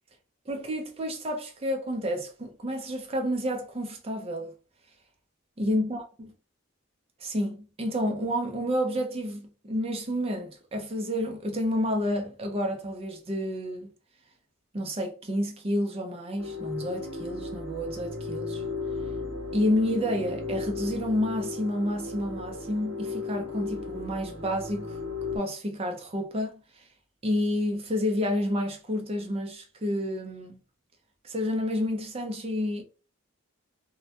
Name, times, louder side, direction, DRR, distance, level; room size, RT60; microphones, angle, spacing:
voice 1, 0.5-4.5 5.6-6.3 7.2-13.9 14.7-18.6 19.5-24.9 25.3-26.8 27.2-30.6 31.2-32.8, equal, 30° right, 0.5 m, -30 dB
sound 1, 16.4-25.4, left 3 dB, 65° right, 0.9 m, -35 dB
2.2 x 2.1 x 2.7 m
head